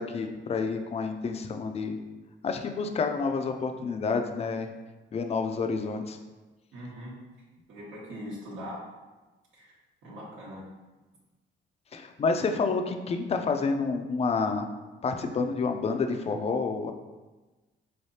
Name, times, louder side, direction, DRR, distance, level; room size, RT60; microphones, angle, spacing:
voice 1, 0.0-2.0 2.4-4.7 5.1-6.2 11.9-14.7 15.0-16.9, left 4 dB, 30° left, 5 dB, 0.4 m, -29 dB
voice 2, 6.7-7.1 7.7-8.8 9.5-9.7 10.0-10.6, equal, 85° right, -7 dB, 1.1 m, -41 dB
4.0 x 3.2 x 2.7 m, 1.2 s
cardioid pair, 90°, 20 cm